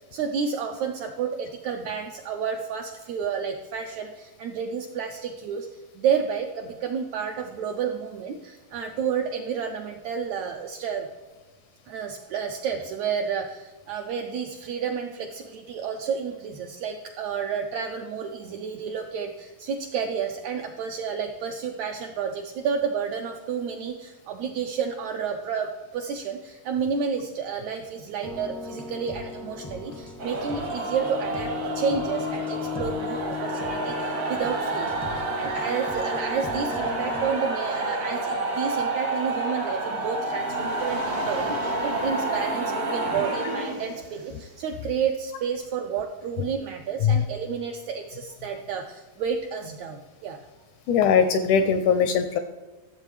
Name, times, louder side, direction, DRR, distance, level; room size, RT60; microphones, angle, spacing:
voice 1, 0.0-11.1 11.9-50.4, right 6 dB, 80° right, 4 dB, 1.6 m, -30 dB
sound 1, 28.2-37.3, left 6 dB, 25° left, 0.3 m, -36 dB
sound 2, 30.2-44.4, right 2 dB, 60° right, 0.8 m, -29 dB
voice 2, 50.9-52.4, left 6 dB, 80° left, 9 dB, 1.8 m, -20 dB
13.0 x 7.5 x 3.2 m, 1.3 s
omnidirectional pair, 3.8 m